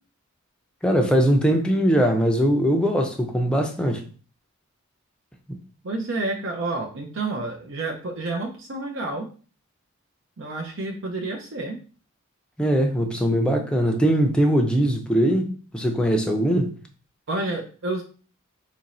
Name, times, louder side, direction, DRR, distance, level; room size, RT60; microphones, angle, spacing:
voice 1, 0.8-4.0 12.6-16.7, equal, 5° left, 0.5 m, -21 dB
voice 2, 5.8-9.3 10.4-11.8 17.3-18.0, right 2 dB, 65° right, 0.6 m, -29 dB
3.0 x 2.6 x 4.1 m
head